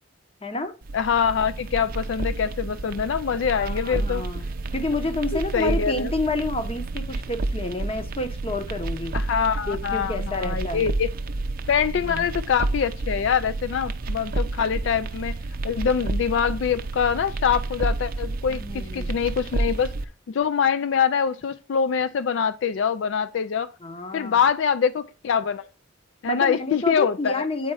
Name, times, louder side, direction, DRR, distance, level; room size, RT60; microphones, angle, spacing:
voice 1, 0.4-0.8 3.6-4.4 4.7-9.2 9.7-10.9 11.9-12.4 18.5-19.2 23.8-24.4 26.3-27.7, left 2 dB, 30° left, 0.8 m, -29 dB
sound 1, 0.8-20.0, right 2 dB, 45° right, 0.5 m, -30 dB
voice 2, 0.9-4.2 5.5-6.1 9.1-11.1 11.7-15.4 15.6-19.9 20.3-23.7 24.1-25.7 26.2-27.5, left 7 dB, 65° left, 0.3 m, -24 dB
8.5 x 4.2 x 4.7 m
head